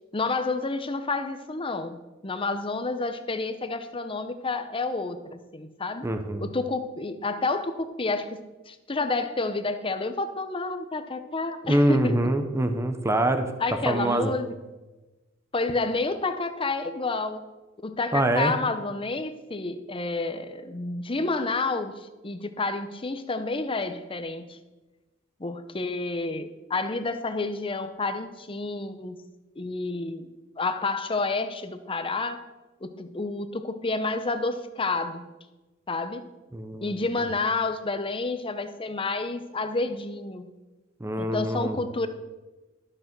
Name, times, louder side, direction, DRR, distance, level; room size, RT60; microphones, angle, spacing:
voice 1, 0.1-6.1 6.4-8.4 8.6-12.1 13.6-14.5 15.5-17.4 17.8-21.9 22.2-24.6 25.4-29.2 29.6-30.3 30.6-32.4 32.8-35.2 35.9-36.3 36.8-40.5 41.2-42.1, left 3 dB, 25° left, 9 dB, 0.8 m, -29 dB
voice 2, 6.0-6.5 11.7-13.5 13.8-14.3 18.1-18.5 36.5-37.0 41.0-41.8, right 1 dB, 15° right, 7 dB, 0.8 m, -24 dB
13.0 x 6.6 x 6.0 m, 1.1 s
head